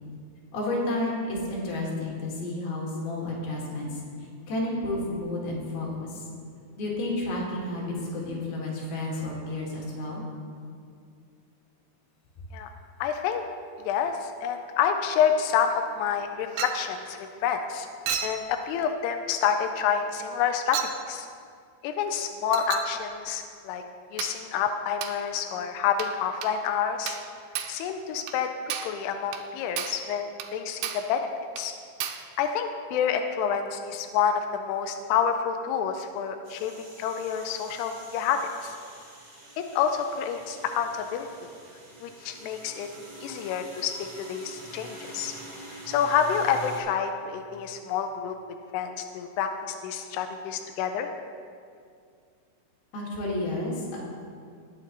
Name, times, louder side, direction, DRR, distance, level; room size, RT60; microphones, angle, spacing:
voice 1, 0.5-4.0 4.5-6.2 6.8-10.2 52.9-54.0, left 1 dB, 60° left, -3 dB, 3.4 m, -31 dB
voice 2, 13.0-13.4 13.8-17.9 18.2-21.3 21.8-23.8 24.1-27.2 27.7-28.5 28.9-31.2 31.6-31.7 32.4-36.7 37.0-38.8 39.7-41.3 42.0-42.9 43.2-45.3 45.9-48.3 48.7-51.1, left 7 dB, 85° left, 6 dB, 2.3 m, -28 dB
Chink clink, 16.6-16.9 18.1-18.4 19.4-19.6 20.7-21.0 22.5-23.0 24.2-24.4 25.0-25.2 26.0-26.2 26.4-26.6 27.1-27.3 27.6-27.8 28.3-28.4 28.7-29.0 29.3-29.5 29.8-30.1 30.4-30.5 30.8-31.1 31.6-31.7 32.0-32.3, right 8 dB, 90° right, 2.9 m, -33 dB
sound 1, 36.4-46.8, right 2 dB, 60° right, 0.6 m, -46 dB
19.0 x 7.1 x 3.0 m, 2.3 s
omnidirectional pair, 5.3 m